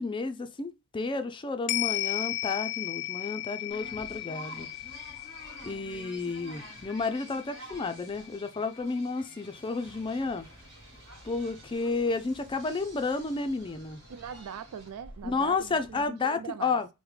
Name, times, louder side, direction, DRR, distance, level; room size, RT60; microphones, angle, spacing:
voice 1, 0.0-4.7 5.6-10.5 11.2-14.0 15.2-16.9, left 4 dB, 20° left, 0.3 m, -31 dB
sound 1, 1.7-10.2 10.6-10.7, left 16 dB, 90° left, 0.4 m, -36 dB
sound 2, 3.7-14.9, right 2 dB, 60° right, 1.4 m, -50 dB
sound 3, 9.8-16.1, equal, 10° right, 1.0 m, -54 dB
voice 2, 14.1-16.8, right 7 dB, 90° right, 0.4 m, -41 dB
4.7 x 2.1 x 3.2 m
head